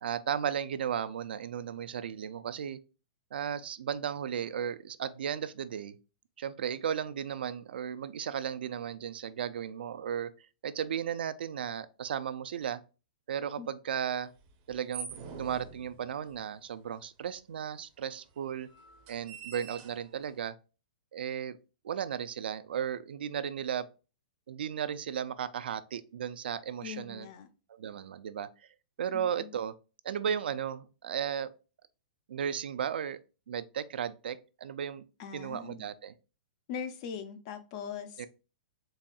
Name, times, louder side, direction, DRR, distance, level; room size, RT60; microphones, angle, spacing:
voice 1, 0.0-2.8 3.3-5.9 6.4-10.3 10.6-12.8 13.3-14.3 14.7-15.1 15.3-18.7 19.1-20.5 21.1-21.6 21.8-23.9 24.5-27.3 27.7-28.5 29.0-29.7 30.0-31.5 32.3-33.2 33.5-35.0 35.3-36.1 38.2-38.3, right 8 dB, 80° right, 0.4 m, -35 dB
sound 1, 14.4-16.4 17.2-17.3 17.5-17.6 18.3-20.4, right 6 dB, 30° right, 0.6 m, -45 dB
voice 2, 26.8-27.5 29.1-29.5 35.2-35.8 36.7-38.2, left 7 dB, 35° left, 0.5 m, -41 dB
4.1 x 3.4 x 2.3 m
hypercardioid pair, 165°, 5 cm